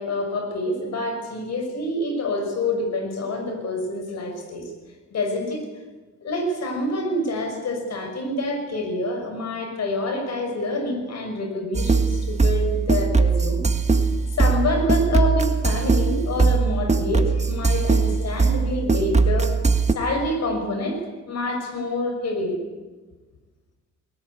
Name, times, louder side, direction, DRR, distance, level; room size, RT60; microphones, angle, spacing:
voice 1, 0.0-4.7 5.1-5.6 6.2-13.6 14.3-19.6 19.9-22.6, left 1 dB, 60° left, 5 dB, 6.5 m, -27 dB
sound 1, 11.7-19.9, right 4 dB, 20° right, 1.7 m, -20 dB
21.0 x 19.0 x 8.6 m, 1.2 s
cardioid pair, 90°, 30 cm